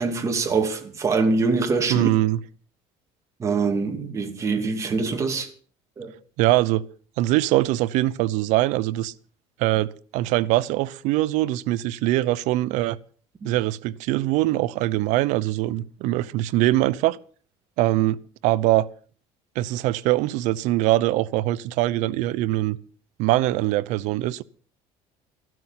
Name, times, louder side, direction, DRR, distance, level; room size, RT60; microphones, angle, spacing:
voice 1, 0.0-2.1 3.4-5.5 6.0-6.1 13.4-13.5, right 4 dB, 25° right, 2.5 m, -24 dB
voice 2, 1.9-2.4 6.4-6.8 7.2-9.1 9.6-13.0 13.4-17.2 17.8-18.2 18.4-18.9 19.6-22.8 23.2-24.4, right 16 dB, 80° right, 0.7 m, -22 dB
14.5 x 12.5 x 5.7 m
cardioid pair, 150°, 12 cm